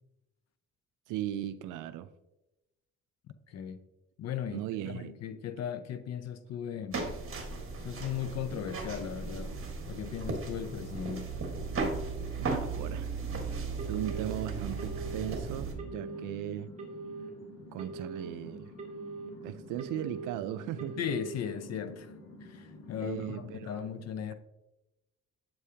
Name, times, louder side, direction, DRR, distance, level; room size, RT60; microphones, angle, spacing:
voice 1, 1.1-2.1 4.5-5.1 12.4-16.7 17.7-18.7 19.4-21.0 23.0-23.9, right 12 dB, 90° right, 0.5 m, -38 dB
voice 2, 3.3-3.8 4.2-7.1 7.8-9.6 9.9-11.3 21.0-24.3, left 8 dB, 60° left, 0.5 m, -37 dB
sound 1, 6.9-15.7, right 4 dB, 45° right, 1.5 m, -36 dB
Telephone, 13.8-14.3 14.8-15.3 15.8-16.3 16.8-17.3 17.8-18.3 18.8-19.3 19.8-20.3 20.8-21.3, right 3 dB, 25° right, 1.8 m, -42 dB
sound 2, 14.4-23.6, left 2 dB, 85° left, 1.3 m, -49 dB
7.8 x 4.9 x 2.8 m
cardioid pair, 90°, 30 cm